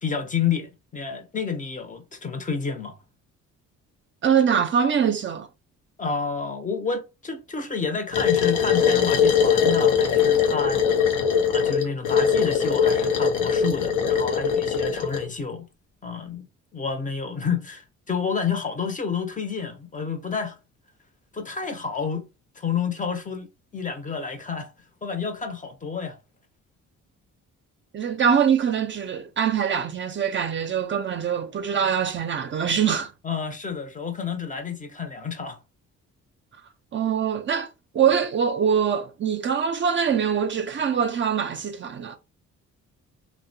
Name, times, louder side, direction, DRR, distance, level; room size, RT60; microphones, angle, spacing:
voice 1, 0.0-3.0 6.0-11.2 11.5-15.7 16.0-16.4 16.7-20.6 21.3-22.3 22.6-24.7 25.0-26.2 33.2-35.6, left 6 dB, 25° left, 0.6 m, -29 dB
voice 2, 4.2-5.5 27.9-33.1 36.9-37.7 37.9-42.2, right 7 dB, 40° right, 0.4 m, -23 dB
sound 1, 8.1-15.3, left 7 dB, 90° left, 0.6 m, -21 dB
2.7 x 2.1 x 2.6 m
cardioid pair, 90°, 30 cm